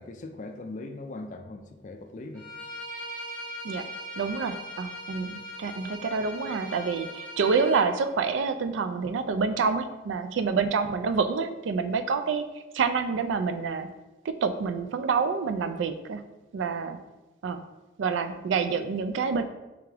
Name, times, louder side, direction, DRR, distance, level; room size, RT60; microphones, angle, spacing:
voice 1, 0.0-2.5 10.5-10.6, left 2 dB, 40° left, 6 dB, 0.3 m, -40 dB
Bowed string instrument, 2.3-7.8, equal, 5° left, 0.7 m, -40 dB
voice 2, 4.2-12.4 12.7-13.9 14.2-16.2 16.5-17.0 17.4-17.6 18.0-19.4, right 5 dB, 80° right, 9 dB, 0.3 m, -27 dB
3.5 x 3.3 x 3.4 m, 1.1 s
head